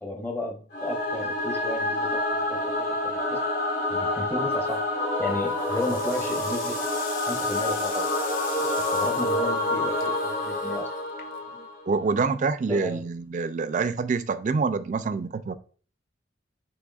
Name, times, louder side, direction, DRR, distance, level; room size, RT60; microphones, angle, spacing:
voice 1, 0.0-2.2 2.8-3.4 3.9-4.9 5.2-6.7 7.2-8.1 8.6-10.9 12.7-13.0, left 1 dB, 10° left, 2 dB, 0.7 m, -33 dB
Singing / Musical instrument, 0.7-12.0, left 1 dB, 70° left, 1.6 m, -28 dB
sound 1, 4.5-4.9 5.4-11.7, left 5 dB, 50° left, 0.7 m, -41 dB
voice 2, 11.9-15.5, right 4 dB, 45° right, 12 dB, 0.3 m, -26 dB
6.0 x 3.4 x 2.3 m, 0.41 s
head